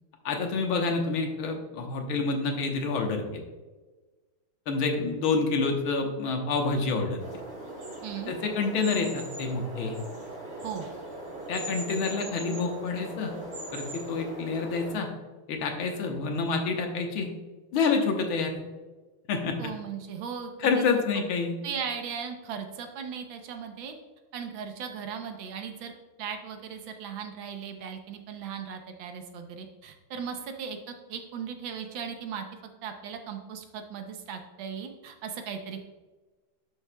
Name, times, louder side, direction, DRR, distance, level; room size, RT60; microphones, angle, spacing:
voice 1, 0.3-3.4 4.7-7.2 8.3-10.0 11.5-13.3 13.7-15.1 15.5-17.3 17.7-18.6 19.3-19.6 20.6-21.5, left 4 dB, 75° left, 3 dB, 1.8 m, -28 dB
sound 1, 7.2-14.9, right 1 dB, 50° right, 3.3 m, -39 dB
voice 2, 8.0-8.3 10.6-10.9 19.6-20.9 21.6-24.0 24.3-25.9 26.2-32.5 32.8-35.9, right 7 dB, 70° right, 6 dB, 1.5 m, -37 dB
11.0 x 6.3 x 2.2 m, 1.2 s
omnidirectional pair, 2.3 m